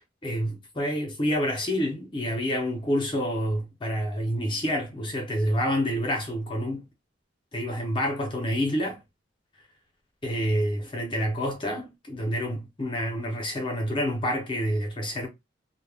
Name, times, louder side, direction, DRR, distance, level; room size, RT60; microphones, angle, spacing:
voice 1, 0.2-6.8 7.5-9.0 10.2-15.3, equal, 25° left, 0.6 m, -28 dB
2.1 x 2.0 x 3.3 m
head